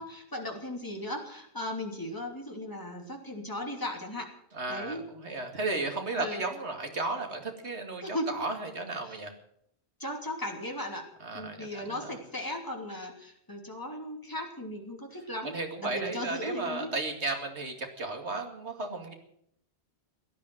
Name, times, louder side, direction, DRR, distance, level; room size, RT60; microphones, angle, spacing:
voice 1, 0.0-4.3 4.7-5.0 6.2-6.4 8.0-8.4 10.0-11.1 11.3-16.9, left 1 dB, 20° left, 2 dB, 2.9 m, -37 dB
voice 2, 4.5-9.3 11.2-12.1 15.4-19.1, right 3 dB, 75° right, 4 dB, 2.6 m, -34 dB
17.0 x 11.0 x 7.8 m, 0.71 s
omnidirectional pair, 1.1 m